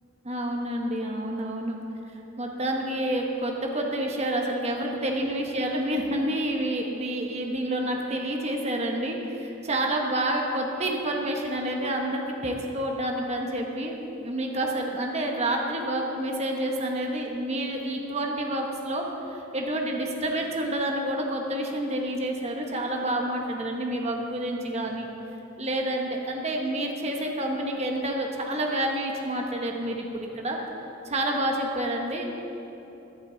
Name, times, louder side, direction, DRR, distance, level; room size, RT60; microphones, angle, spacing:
voice 1, 0.2-1.8 2.4-13.9 14.2-25.1 25.6-30.6 31.0-32.3, right 1 dB, 35° right, 1 dB, 1.0 m, -28 dB
14.0 x 11.0 x 3.9 m, 3.0 s
head